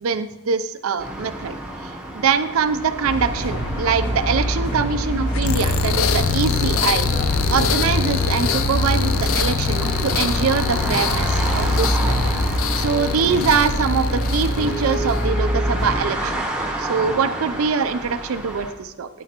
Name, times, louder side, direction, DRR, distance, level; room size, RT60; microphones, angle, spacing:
voice 1, 0.0-1.5 2.1-7.1 7.5-12.3 12.8-16.4 16.8-19.1, right 6 dB, 90° right, 10 dB, 0.5 m, -23 dB
sound 1, 1.0-18.7, right 1 dB, 5° right, 1.0 m, -31 dB
sound 2, 3.0-16.0, equal, 55° left, 1.9 m, -25 dB
sound 3, 5.3-15.3, left 5 dB, 85° left, 0.5 m, -24 dB
9.5 x 9.1 x 2.9 m, 0.98 s
head